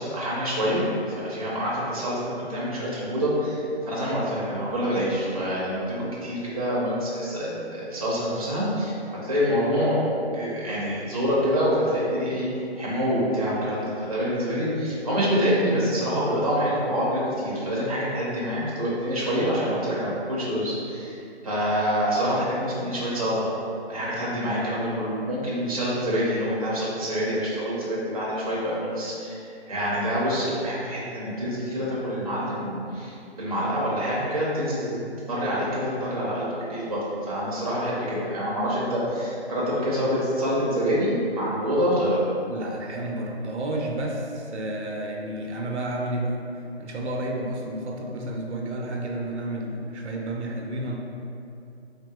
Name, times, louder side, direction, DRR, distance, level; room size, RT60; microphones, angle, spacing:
voice 1, 0.0-6.0 6.2-9.0 9.2-10.0 10.3-12.5 12.8-21.2 21.4-23.5 23.9-35.0 35.3-42.2, equal, 35° right, -7 dB, 0.5 m, -26 dB
voice 2, 42.5-46.4 46.8-51.0, right 1 dB, 80° right, 0 dB, 0.5 m, -31 dB
3.4 x 2.4 x 2.3 m, 2.6 s
hypercardioid pair, 170°, 33 cm